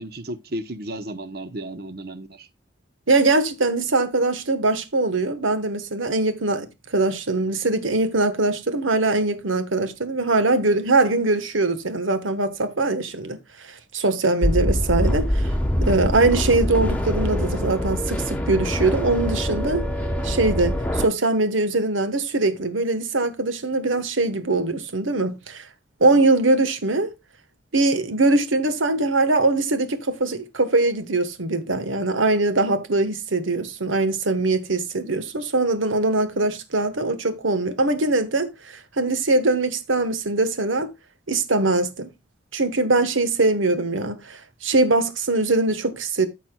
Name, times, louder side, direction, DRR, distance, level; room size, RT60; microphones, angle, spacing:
voice 1, 0.0-2.5, right 1 dB, 50° right, 0.9 m, -33 dB
voice 2, 3.1-15.5 15.8-19.9 20.2-25.6 26.0-27.1 27.7-40.9 41.3-42.1 42.5-46.3, right 2 dB, 85° right, 1.4 m, -22 dB
sound 1, 14.4-21.1, equal, 5° left, 1.2 m, -24 dB
14.0 x 5.8 x 2.3 m
head